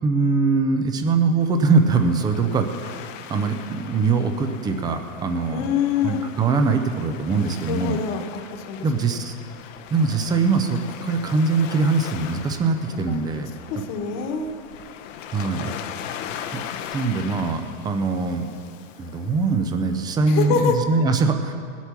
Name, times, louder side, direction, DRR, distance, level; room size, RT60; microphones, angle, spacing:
voice 1, 0.0-5.7 6.0-8.0 8.8-9.3 9.9-13.5 15.3-15.8 16.5-16.6 16.9-18.5 19.0-21.5, right 4 dB, 10° right, 7 dB, 0.4 m, -22 dB
Waves surf, 1.4-20.2, left 9 dB, 65° left, 0.9 m, -39 dB
voice 2, 5.5-6.2 7.4-8.4 8.7-8.8 13.7-14.5 20.3-20.8, left 7 dB, 40° left, 4 dB, 1.4 m, -25 dB
18.5 x 8.2 x 5.9 m, 2.4 s
supercardioid pair, 150°, 40 cm